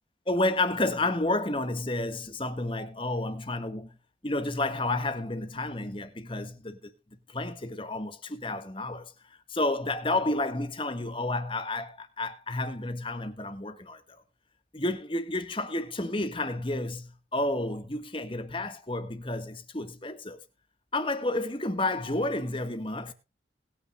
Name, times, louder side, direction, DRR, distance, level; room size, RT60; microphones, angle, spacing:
voice 1, 0.3-4.0 4.2-6.9 7.3-9.1 9.5-14.0 14.7-20.4 20.9-23.1, left 2 dB, 30° left, 1.7 m, -31 dB
20.5 x 9.6 x 2.4 m
head